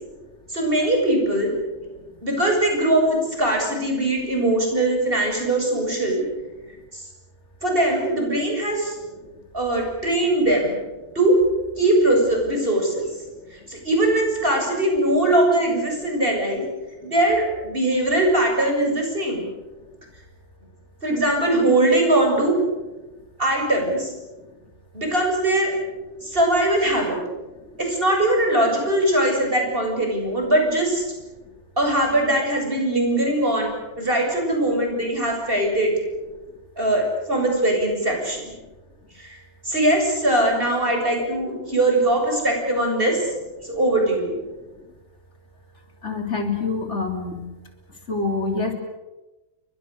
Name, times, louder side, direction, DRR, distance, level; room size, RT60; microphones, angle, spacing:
voice 1, 0.5-1.5 2.2-6.2 6.9-7.0 7.6-9.0 9.5-10.8 11.1-11.3 11.8-13.1 13.5-16.6 17.0-19.5 21.0-22.6 23.4-24.1 24.9-25.7 26.2-27.2 27.8-31.0 31.8-35.9 36.8-38.5 39.2-39.4 39.7-43.2 43.6-44.3, right 1 dB, 50° right, 1 dB, 7.7 m, -21 dB
voice 2, 46.0-47.4 48.1-48.7, left 4 dB, 75° left, 4 dB, 3.9 m, -26 dB
29.5 x 23.5 x 6.7 m, 1.1 s
omnidirectional pair, 1.2 m